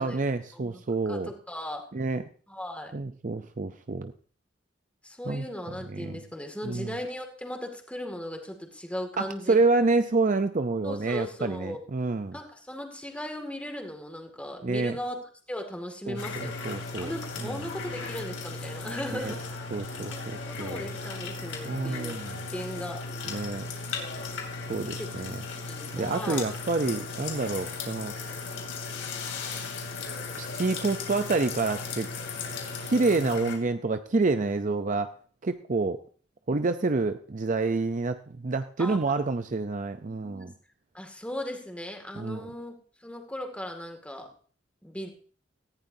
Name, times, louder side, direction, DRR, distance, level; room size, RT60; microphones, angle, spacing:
voice 1, 0.0-1.3 1.9-2.2 2.9-4.1 5.3-5.4 5.9-6.2 6.6-6.9 9.2-12.4 14.6-14.9 16.1-17.1 17.4-17.5 19.1-19.3 19.7-20.9 21.6-22.3 23.2-23.7 24.7-25.4 25.9-28.1 30.4-32.1 32.8-35.1 35.4-36.0 36.5-40.5 42.2-42.5, right 3 dB, 45° right, 9 dB, 0.6 m, -28 dB
voice 2, 1.1-1.9 2.5-2.9 5.0-9.6 10.8-11.8 12.3-15.2 15.5-16.5 17.0-19.6 20.1-22.2 22.5-23.0 24.8-25.1 25.5-26.4 38.8-39.0 39.3-39.4 39.9-40.5 40.9-44.3 44.8-45.1, left 1 dB, 5° left, 3 dB, 2.2 m, -37 dB
sound 1, 16.1-33.6, left 4 dB, 85° left, 3.1 m, -36 dB
18.0 x 14.5 x 2.7 m, 0.44 s
head